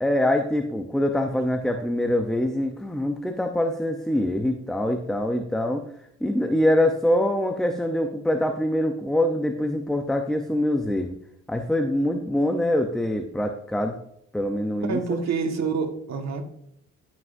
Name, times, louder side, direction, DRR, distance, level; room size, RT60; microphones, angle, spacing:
voice 1, 0.0-5.8 6.2-11.2 11.5-14.0 14.3-15.2, left 1 dB, ahead, 5 dB, 0.7 m, -24 dB
voice 2, 14.9-16.4, right 5 dB, 60° right, 4 dB, 1.6 m, -27 dB
14.5 x 6.1 x 2.6 m, 0.74 s
cardioid pair, 90°, 30 cm